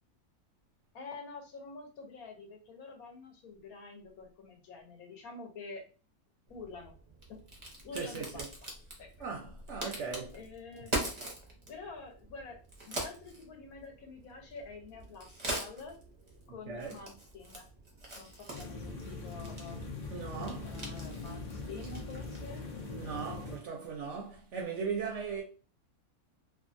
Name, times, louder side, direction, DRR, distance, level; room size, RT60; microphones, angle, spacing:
voice 1, 0.9-5.9 6.5-6.9 7.3-7.4 7.8-8.7 9.0-9.3 9.8-11.0 11.7-16.0 16.5-17.7 18.2-19.8 20.6-22.6, left 4 dB, 75° left, 1.2 m, -48 dB
Crack, 6.5-22.6, right 1 dB, 40° right, 0.4 m, -43 dB
voice 2, 7.9-8.3 9.2-10.3 16.7-17.0 20.1-20.7 23.0-25.4, right 5 dB, 65° right, 0.7 m, -38 dB
sound 1, 18.5-23.6, left 3 dB, 55° left, 0.5 m, -41 dB
2.7 x 2.4 x 2.5 m
omnidirectional pair, 1.6 m